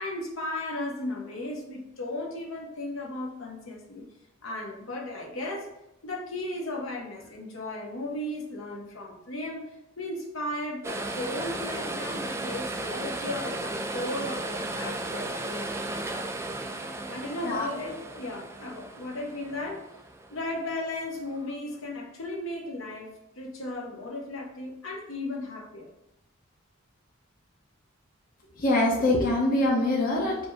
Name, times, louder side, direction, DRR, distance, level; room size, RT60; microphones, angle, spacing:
voice 1, 0.0-4.0 4.4-5.7 6.0-9.6 10.0-16.0 17.1-19.9 20.3-25.9, left 1 dB, 70° left, -1 dB, 1.0 m, -35 dB
sound 1, 10.8-21.1 21.5-21.6, right 2 dB, 15° right, 0.3 m, -35 dB
voice 2, 28.6-30.4, left 1 dB, 45° left, -3 dB, 0.8 m, -24 dB
5.1 x 2.1 x 4.8 m, 0.86 s
head